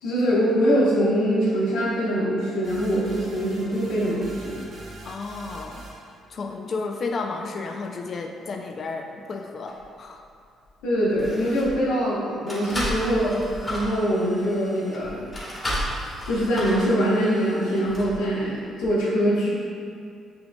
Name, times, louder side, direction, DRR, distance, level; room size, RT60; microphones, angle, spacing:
voice 1, 0.0-4.6 10.8-13.4 13.7-15.2 16.2-19.5, equal, 85° left, -6 dB, 0.9 m, -23 dB
sound 1, 2.6-6.1, right 2 dB, 60° right, 0.8 m, -43 dB
voice 2, 5.0-5.8 6.3-10.2, left 4 dB, 50° left, 4 dB, 0.3 m, -32 dB
sound 2, 9.7-9.8 10.6-10.8 11.1-11.8 12.5-18.2 18.8-18.9, equal, 25° left, 1.3 m, -33 dB
6.6 x 2.9 x 2.2 m, 2.3 s
supercardioid pair, 70°, 0 cm